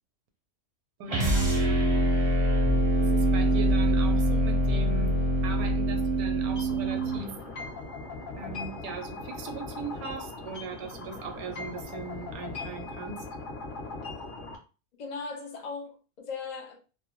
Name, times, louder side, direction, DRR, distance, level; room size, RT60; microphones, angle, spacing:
voice 1, 1.0-2.0 3.0-5.2 5.4-7.3 8.4-13.3, right 5 dB, 80° right, 1.0 m, -39 dB
sound 1, 1.1-7.3, right 1 dB, 40° right, 0.5 m, -24 dB
sound 2, 6.6-14.6, left 3 dB, 50° left, 0.7 m, -39 dB
voice 2, 15.0-16.8, left 4 dB, 90° left, 0.3 m, -38 dB
2.6 x 2.1 x 2.9 m
omnidirectional pair, 1.5 m